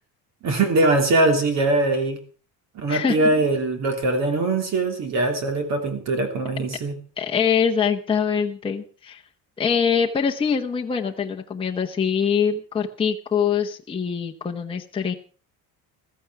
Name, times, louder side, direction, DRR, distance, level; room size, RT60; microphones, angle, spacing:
voice 1, 0.4-2.2 2.7-7.0, right 2 dB, 45° right, 6 dB, 3.1 m, -22 dB
voice 2, 2.9-3.3 7.2-9.2 9.6-15.1, left 7 dB, 15° left, 1 dB, 1.0 m, -24 dB
15.0 x 14.5 x 4.8 m, 0.38 s
cardioid pair, 180°, 36 cm